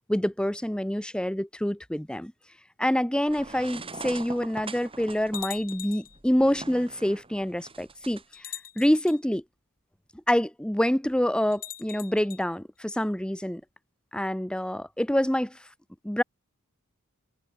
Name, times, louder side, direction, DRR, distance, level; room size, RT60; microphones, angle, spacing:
voice 1, 0.1-2.3 2.8-9.4 10.3-13.6 14.1-15.6 16.0-16.2, equal, 5° left, 0.7 m, -26 dB
sound 1, 3.3-8.2, right 3 dB, 25° right, 5.3 m, -42 dB
sound 2, 4.5-4.6 5.3-6.2 7.3-7.4 8.3-9.2 11.5-12.4, left 11 dB, 40° left, 2.6 m, -41 dB
open air
head